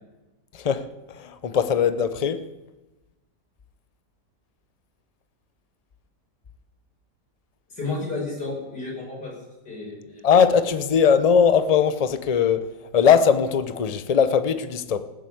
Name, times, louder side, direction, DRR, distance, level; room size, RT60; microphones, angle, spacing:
voice 1, 0.5-2.4 10.2-15.0, left 7 dB, 45° left, 0.5 m, -20 dB
voice 2, 7.7-9.3 9.6-10.2, left 3 dB, 70° left, 5.9 m, -32 dB
18.5 x 7.6 x 8.5 m
omnidirectional pair, 1.8 m